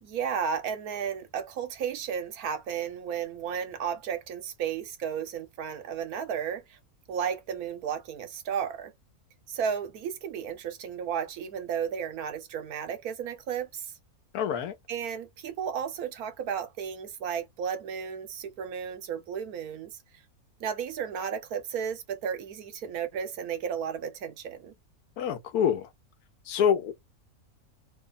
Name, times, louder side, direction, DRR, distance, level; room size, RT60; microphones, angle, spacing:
voice 1, 0.0-6.8 7.1-8.9 9.5-13.9 14.9-20.0 20.6-24.7, right 7 dB, 85° right, 1.3 m, -33 dB
voice 2, 14.3-14.7 25.2-25.9 26.5-26.9, left 8 dB, 90° left, 1.2 m, -26 dB
3.1 x 2.3 x 3.9 m
omnidirectional pair, 1.5 m